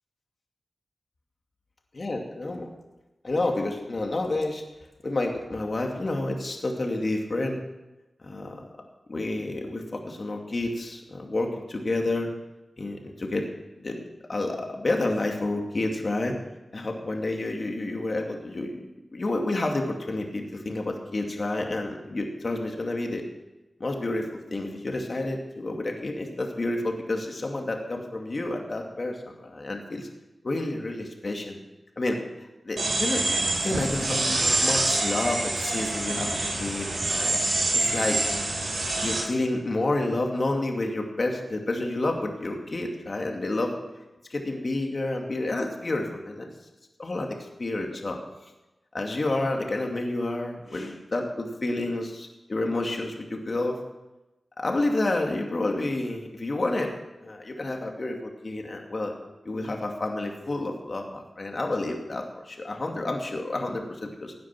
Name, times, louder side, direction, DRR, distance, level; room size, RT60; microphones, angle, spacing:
voice 1, 2.0-2.7 3.2-4.6 5.0-7.6 8.2-8.7 9.1-12.3 12.8-13.4 13.8-16.3 16.7-18.8 19.1-23.2 23.8-30.1 30.4-31.6 32.0-32.2 32.7-37.3 37.7-38.2 39.0-43.7 44.3-46.5 47.0-48.2 48.9-53.8 54.6-57.0 57.2-59.1 59.4-64.3, left 2 dB, 50° left, 2 dB, 2.5 m, -29 dB
sound 1, 32.8-39.2, right 2 dB, 80° right, 5.1 m, -26 dB
17.0 x 9.5 x 6.0 m, 1.0 s
wide cardioid pair, 70°, 0 cm